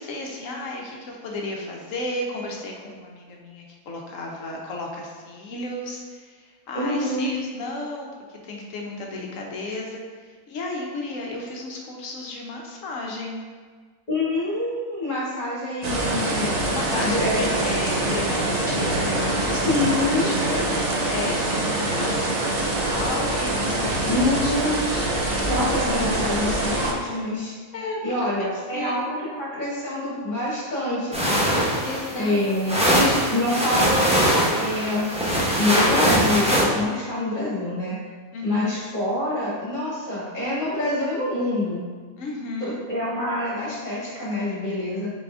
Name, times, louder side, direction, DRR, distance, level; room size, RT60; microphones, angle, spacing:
voice 1, 0.0-13.4 16.7-25.2 27.7-29.0 31.8-32.4 32.6-33.2 38.3-38.7 42.2-42.8, left 2 dB, 70° left, 0 dB, 1.0 m, -34 dB
voice 2, 6.7-7.3 14.1-16.6 16.9-17.3 19.6-20.3 24.1-24.8 25.5-27.5 28.0-31.5 32.2-34.1 34.6-35.1 35.5-38.0 38.4-41.8 42.6-45.1, left 1 dB, 35° left, -8 dB, 1.8 m, -26 dB
sound 1, 15.8-26.9, right 2 dB, 60° right, 0.4 m, -24 dB
sound 2, 31.1-36.6, equal, 5° right, 0.6 m, -21 dB
4.1 x 3.7 x 3.5 m, 1.5 s
omnidirectional pair, 1.5 m